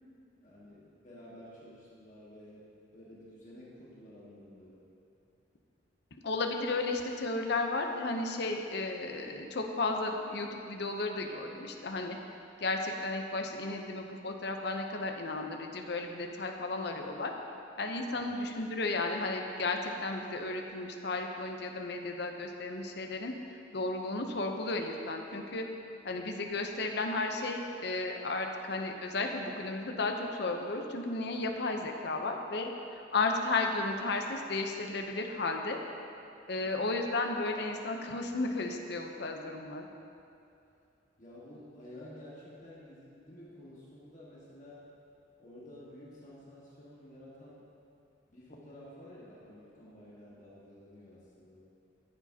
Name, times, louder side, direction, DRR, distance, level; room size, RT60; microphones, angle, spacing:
voice 1, 0.4-4.9 18.1-18.4 41.2-44.8 45.4-47.7 48.3-51.6, left 1 dB, 40° left, -7 dB, 1.6 m, -52 dB
voice 2, 6.2-12.2 12.6-17.3 17.8-23.3 23.7-25.7 26.0-35.8 36.5-39.9, left 3 dB, 60° left, 3 dB, 0.7 m, -34 dB
13.0 x 7.3 x 2.8 m, 2.6 s
head